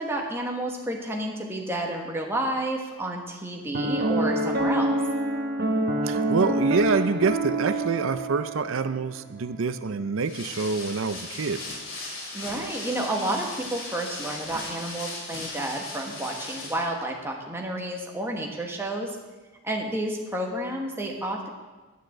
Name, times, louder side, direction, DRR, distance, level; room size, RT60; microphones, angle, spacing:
voice 1, 0.0-5.0 12.3-19.1 19.6-21.5, right 1 dB, 10° right, 0 dB, 1.4 m, -30 dB
Piano, 3.7-9.0, right 1 dB, 50° right, 1.0 m, -26 dB
voice 2, 6.0-11.6, right 4 dB, 65° right, 12 dB, 0.5 m, -26 dB
sound 1, 10.2-16.9, left 2 dB, 70° left, 2.5 m, -37 dB
9.6 x 6.6 x 7.7 m, 1.3 s
head